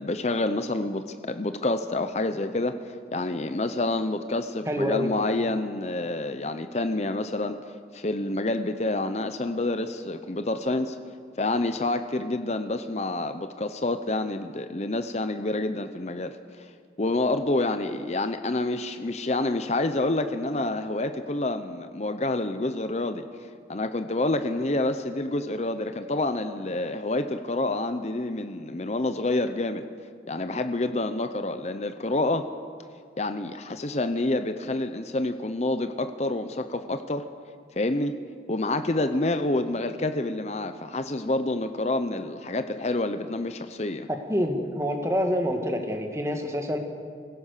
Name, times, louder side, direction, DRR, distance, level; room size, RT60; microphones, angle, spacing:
voice 1, 0.0-11.0 11.4-16.7 17.0-23.3 23.7-29.8 30.3-32.5 33.2-37.2 37.7-38.1 38.5-44.1, left 2 dB, 40° left, 9 dB, 0.7 m, -28 dB
voice 2, 4.7-5.1 44.1-46.8, equal, 15° right, 4 dB, 1.9 m, -27 dB
24.0 x 17.0 x 6.7 m, 2.1 s
head